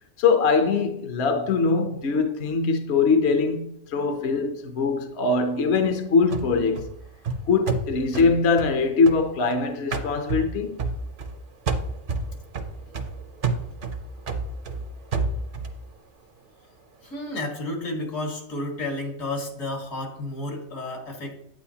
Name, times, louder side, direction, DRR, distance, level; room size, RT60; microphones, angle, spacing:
voice 1, 0.2-6.9 7.5-10.8, left 4 dB, 60° left, 1.0 m, -22 dB
sound 1, 6.3-9.6 9.9-11.4 11.7-15.8, right 3 dB, 45° right, 0.8 m, -30 dB
voice 2, 17.0-21.4, left 2 dB, 80° left, 2.1 m, -31 dB
9.0 x 8.8 x 2.8 m
omnidirectional pair, 1.4 m